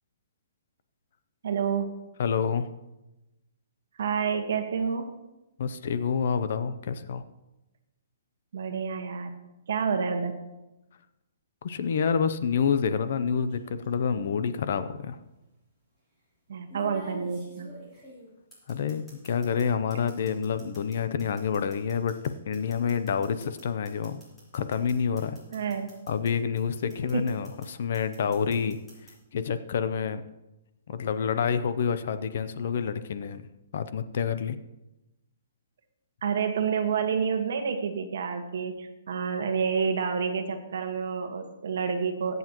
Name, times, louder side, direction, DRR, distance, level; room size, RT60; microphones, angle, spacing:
voice 1, 1.4-1.9 4.0-5.1 8.5-9.3 9.7-10.4 16.5-17.7 25.5-25.9 27.1-27.3 36.2-42.4, right 6 dB, 55° right, 5 dB, 1.5 m, -29 dB
voice 2, 2.2-2.7 5.6-7.2 11.6-15.2 18.7-24.2 24.5-25.4 26.1-28.8 29.3-30.2 30.9-33.4 33.7-34.6, left 6 dB, 45° left, 12 dB, 0.6 m, -28 dB
sound 1, 13.5-13.8 15.0-15.1 16.7-19.6 19.9-26.3 26.6-27.7 27.9-29.1, right 1 dB, 5° left, 3.2 m, -47 dB
21.5 x 8.0 x 3.0 m, 0.97 s
hypercardioid pair, 180°, 0 cm